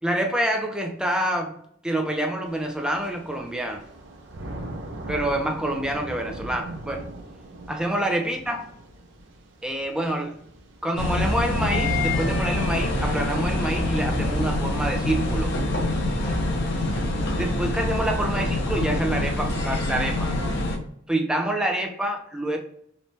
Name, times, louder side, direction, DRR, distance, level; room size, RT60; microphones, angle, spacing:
voice 1, 0.0-1.6 1.8-3.8 5.1-7.0 7.7-8.6 9.6-10.3 10.8-15.5 17.4-20.3 21.1-22.6, right 1 dB, 5° right, 2 dB, 0.4 m, -27 dB
Thunder / Rain, 2.5-12.4, right 1 dB, 65° right, 0.6 m, -40 dB
sound 1, 11.0-20.8, left 1 dB, 60° left, 0.6 m, -25 dB
3.0 x 2.1 x 2.6 m, 0.68 s
head